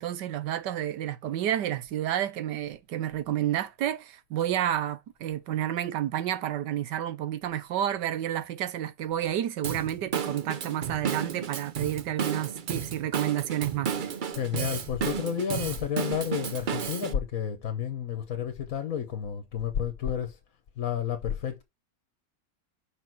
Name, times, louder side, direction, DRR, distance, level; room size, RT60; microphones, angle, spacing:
voice 1, 0.0-14.1, right 11 dB, 90° right, 1.5 m, -30 dB
Drum kit / Drum, 9.6-17.1, right 7 dB, 65° right, 0.4 m, -33 dB
voice 2, 14.3-20.4 20.8-21.6, left 8 dB, 60° left, 1.4 m, -31 dB
6.1 x 5.8 x 4.6 m
omnidirectional pair, 1.8 m